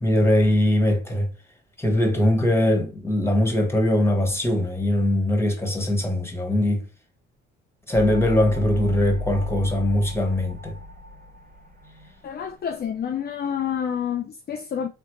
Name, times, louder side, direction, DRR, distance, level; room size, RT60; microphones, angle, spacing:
voice 1, 0.0-1.3 1.8-6.8 7.9-10.8, left 1 dB, 10° left, 1.6 m, -21 dB
sound 1, 7.9-13.0, left 2 dB, 25° right, 1.7 m, -35 dB
voice 2, 12.2-14.9, left 8 dB, 30° left, 0.5 m, -28 dB
4.0 x 3.1 x 3.1 m
hypercardioid pair, 55°, 30 cm